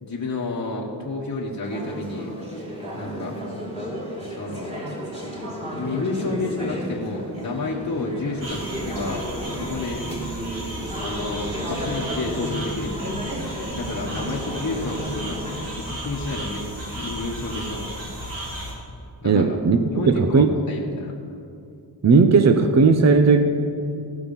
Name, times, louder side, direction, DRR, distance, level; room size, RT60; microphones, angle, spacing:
voice 1, 0.0-2.3 3.0-3.3 4.3-4.8 5.7-9.2 9.5-10.0 11.0-13.2 13.7-15.0 15.3-15.4 15.7-16.6 16.9-17.9 19.2-19.6 19.9-21.1, left 3 dB, 40° left, -4 dB, 1.2 m, -30 dB
Conversation / Chatter, 1.6-15.6, equal, 15° right, 2.9 m, -33 dB
sound 1, 8.4-18.7, right 1 dB, 85° right, 2.9 m, -34 dB
voice 2, 19.2-20.5 22.0-23.7, right 4 dB, 35° right, 7 dB, 0.6 m, -16 dB
16.0 x 6.0 x 5.4 m, 2.5 s
wide cardioid pair, 95°, 45 cm